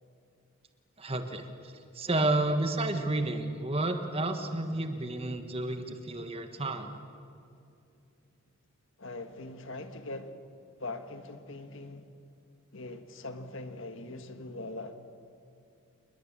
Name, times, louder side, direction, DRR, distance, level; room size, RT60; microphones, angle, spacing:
voice 1, 1.0-6.9, right 2 dB, 25° right, 1.5 m, -31 dB
voice 2, 9.0-10.3 10.8-12.0 12.7-15.0, left 2 dB, 60° left, 1.6 m, -41 dB
28.0 x 21.5 x 7.6 m
head